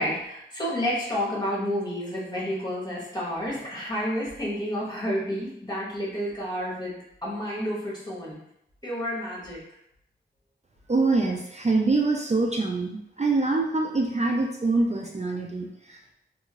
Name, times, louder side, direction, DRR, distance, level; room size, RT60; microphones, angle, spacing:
voice 1, 0.0-8.4 8.8-9.6, equal, 20° left, -7 dB, 1.3 m, -30 dB
voice 2, 10.9-16.1, right 3 dB, 35° right, 0 dB, 0.4 m, -25 dB
2.8 x 2.6 x 2.9 m, 0.78 s
wide cardioid pair, 70°, 20 cm